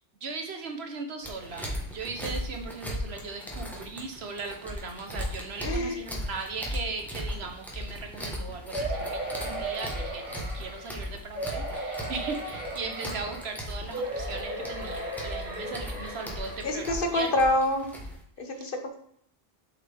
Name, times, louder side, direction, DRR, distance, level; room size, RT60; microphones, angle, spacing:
voice 1, 0.2-17.3 18.5-18.7, right 4 dB, 85° right, 3 dB, 1.4 m, -38 dB
sound 1, 1.2-18.2, equal, ahead, 1.5 m, -37 dB
voice 2, 5.6-6.0 16.6-17.9 18.4-19.0, left 1 dB, 60° left, 5 dB, 1.2 m, -27 dB
sound 2, 8.7-10.9 11.3-13.5 13.9-16.8 17.3-17.4 17.7-17.8, right 1 dB, 20° right, 2.4 m, -36 dB
7.4 x 5.7 x 3.6 m, 0.69 s
omnidirectional pair, 1.0 m